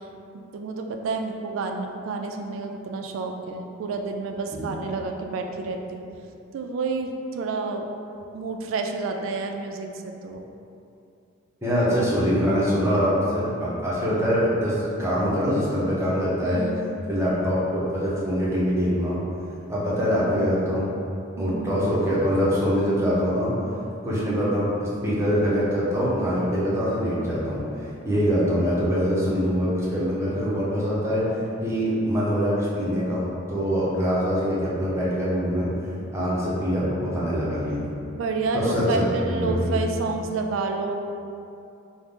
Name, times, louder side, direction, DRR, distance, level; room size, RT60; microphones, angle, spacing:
voice 1, 0.3-6.0 6.5-7.8 8.3-10.4 12.0-12.1 16.4-17.0 21.4-21.7 38.1-40.9, right 3 dB, 80° right, 3 dB, 0.3 m, -29 dB
voice 2, 11.6-16.6 17.1-19.2 19.7-20.9 21.4-23.5 24.0-31.2 31.6-35.7 36.1-37.8 38.5-39.8, equal, 15° right, -8 dB, 0.6 m, -24 dB
3.6 x 2.0 x 3.6 m, 2.6 s
head